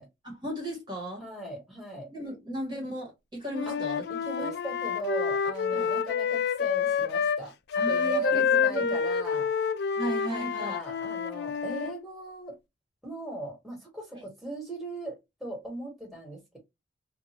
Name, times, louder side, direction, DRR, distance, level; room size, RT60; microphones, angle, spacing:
voice 1, 0.2-1.2 2.1-4.0 4.4-4.5 5.7-5.9 7.7-8.9 10.0-10.8 14.1-14.2, equal, 25° right, 1.3 m, -36 dB
voice 2, 1.2-2.1 3.7-7.5 7.9-9.5 10.2-12.6 13.0-16.6, right 2 dB, ahead, 1.5 m, -38 dB
Wind instrument woodwind instrument, 3.5-7.4 7.7-12.0, left 6 dB, 60° left, 0.3 m, -28 dB
2.6 x 2.5 x 2.8 m
head